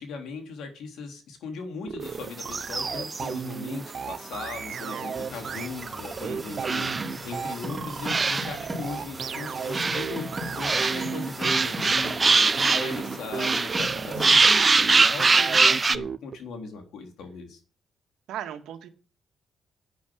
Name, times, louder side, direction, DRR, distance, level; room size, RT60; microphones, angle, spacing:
voice 1, 0.0-17.6, left 4 dB, 80° left, 4 dB, 3.6 m, -38 dB
sound 1, 1.8-16.4, right 6 dB, 50° right, 1.0 m, -34 dB
sound 2, 2.4-3.3 3.9-4.0 4.3-4.4 5.9-6.0 6.6-7.6 8.0-8.6 9.3-13.1 13.4-16.0, right 4 dB, 30° right, 0.7 m, -23 dB
sound 3, 5.1-14.4, equal, 10° right, 5.4 m, -38 dB
voice 2, 6.2-7.0 18.3-18.9, right 10 dB, 85° right, 6 dB, 2.0 m, -39 dB
11.0 x 8.3 x 6.4 m, 0.39 s
cardioid pair, 90°, 0 cm